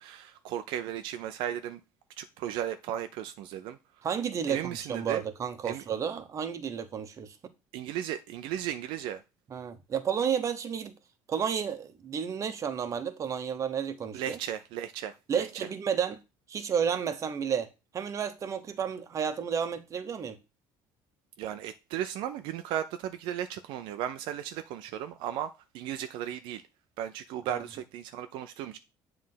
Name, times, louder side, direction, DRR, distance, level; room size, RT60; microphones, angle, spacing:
voice 1, 0.0-1.8 2.2-3.8 4.5-5.2 5.6-5.8 7.7-9.2 14.1-15.4 21.4-26.6 27.0-28.8, right 10 dB, 75° right, 0.5 m, -35 dB
voice 2, 4.0-7.4 9.5-10.9 11.3-14.4 15.3-16.2 16.5-17.7 17.9-20.4 27.5-27.6, right 7 dB, 40° right, 1.0 m, -31 dB
7.5 x 3.3 x 5.6 m
cardioid pair, 115°, 8 cm